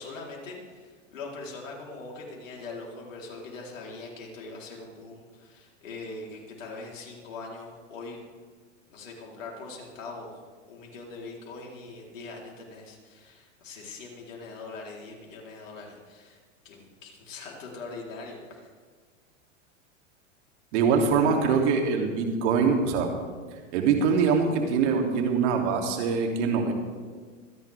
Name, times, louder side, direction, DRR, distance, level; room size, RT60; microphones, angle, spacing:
voice 1, 0.0-8.2 8.9-10.4 10.7-16.4 16.6-18.7, left 3 dB, 80° left, -2 dB, 4.1 m, -42 dB
voice 2, 20.7-23.1 23.7-26.7, right 5 dB, 60° right, 2 dB, 3.0 m, -23 dB
26.5 x 11.0 x 3.6 m, 1.5 s
hypercardioid pair, 115°, 38 cm